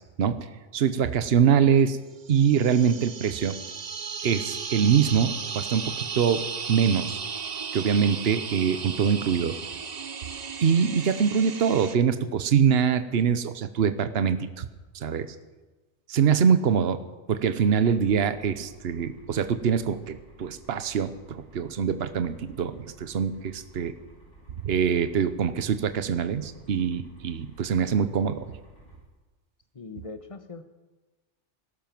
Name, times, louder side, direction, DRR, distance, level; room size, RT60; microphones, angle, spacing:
voice 1, 0.2-2.0 2.3-3.6 4.2-7.2 7.7-9.6 10.6-14.7 14.9-15.3 16.1-17.0 17.3-23.9 24.6-28.5, right 7 dB, 60° right, 11 dB, 1.1 m, -24 dB
sound 1, 2.2-12.0, right 6 dB, 40° right, 0.8 m, -35 dB
sound 2, 17.7-29.0, right 1 dB, 80° left, 6.2 m, -53 dB
voice 2, 29.7-30.6, left 3 dB, 30° left, 9 dB, 1.1 m, -40 dB
19.5 x 12.0 x 6.0 m, 1.2 s
omnidirectional pair, 1.2 m